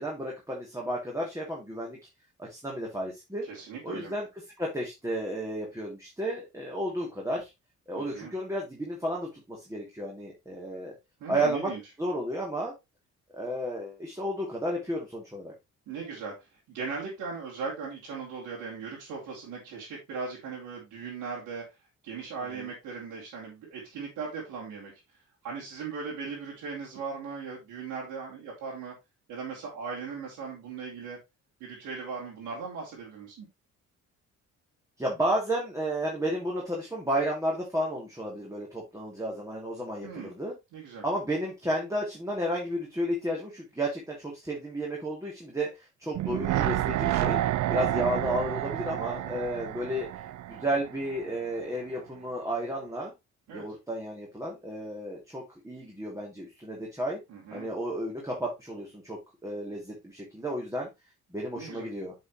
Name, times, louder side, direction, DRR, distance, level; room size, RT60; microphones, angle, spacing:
voice 1, 0.0-2.0 2.5-3.4 3.8-4.3 4.6-7.5 7.9-10.9 11.3-11.7 12.0-12.7 13.3-15.5 22.5-22.7 35.0-40.5 41.0-45.7 46.0-47.4 47.7-50.1 50.5-53.1 53.5-57.2 57.5-60.9 61.3-62.1, right 1 dB, 10° right, -3 dB, 3.0 m, -32 dB
voice 2, 3.4-4.1 7.9-8.3 11.2-11.8 15.9-21.6 22.0-24.9 25.4-28.9 29.3-31.2 31.6-33.5 40.0-40.3 40.7-41.0 47.7-48.1 53.5-53.6 57.3-57.7 61.5-61.9, right 5 dB, 90° right, -5 dB, 2.9 m, -38 dB
sound 1, 46.1-51.3 51.6-51.7, right 13 dB, 70° right, 0.5 m, -29 dB
7.8 x 5.8 x 3.2 m, 0.22 s
cardioid pair, 90°, 30 cm